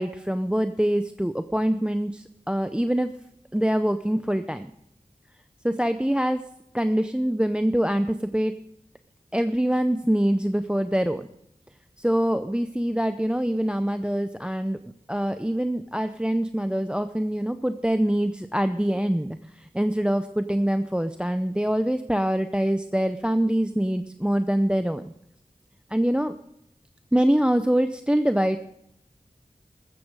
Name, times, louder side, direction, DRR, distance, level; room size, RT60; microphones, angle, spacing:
voice 1, 0.0-3.1 3.5-4.7 5.6-6.4 6.7-8.5 9.3-11.3 12.0-14.8 15.1-25.1 25.9-26.4 27.1-28.6, equal, 5° right, 10 dB, 0.6 m, -24 dB
14.0 x 14.0 x 4.8 m, 0.80 s
wide cardioid pair, 45°, 14 cm